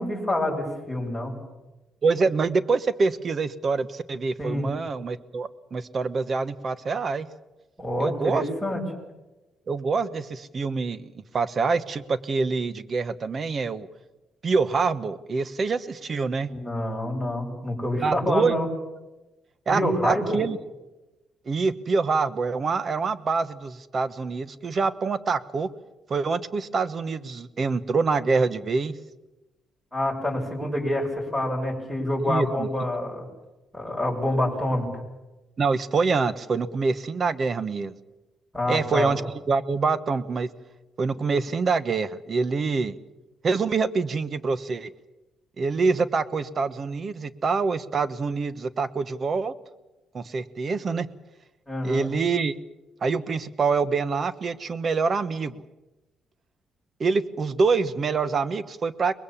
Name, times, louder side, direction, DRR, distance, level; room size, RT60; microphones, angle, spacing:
voice 1, 0.0-1.3 4.4-4.7 7.8-8.8 16.5-18.7 19.7-20.4 29.9-33.3 33.7-34.9 38.5-39.1 51.7-52.1, left 1 dB, ahead, 0 dB, 6.7 m, -27 dB
voice 2, 2.0-7.3 8.0-8.4 9.7-11.1 11.3-13.9 14.4-16.5 18.0-18.5 19.7-20.6 21.5-25.7 26.1-29.0 32.2-32.7 35.6-37.9 38.7-39.2 39.5-40.5 41.0-43.0 43.4-44.9 45.6-49.5 50.1-51.1 51.8-52.5 53.0-55.6 57.0-59.1, right 4 dB, 45° right, 15 dB, 1.1 m, -25 dB
23.5 x 20.5 x 7.3 m, 1.1 s
cardioid pair, 90°, 0 cm